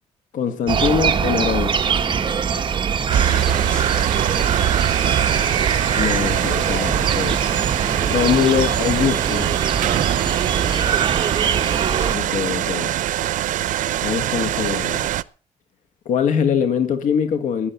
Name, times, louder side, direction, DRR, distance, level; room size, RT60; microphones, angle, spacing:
voice 1, 0.3-1.8 5.9-7.4 8.0-9.6 12.1-13.0 14.0-15.1 16.1-17.7, left 7 dB, 80° left, 1.6 m, -22 dB
sound 1, 0.7-12.1, right 7 dB, 40° right, 1.4 m, -22 dB
sound 2, 3.1-15.2, right 13 dB, 90° right, 0.7 m, -23 dB
voice 2, 3.2-4.4 9.8-11.2, equal, 5° left, 6.4 m, -40 dB
sound 3, 9.8-13.6 14.1-14.2, right 11 dB, 70° right, 1.0 m, -31 dB
16.5 x 11.0 x 6.8 m
cardioid pair, 150°, 13 cm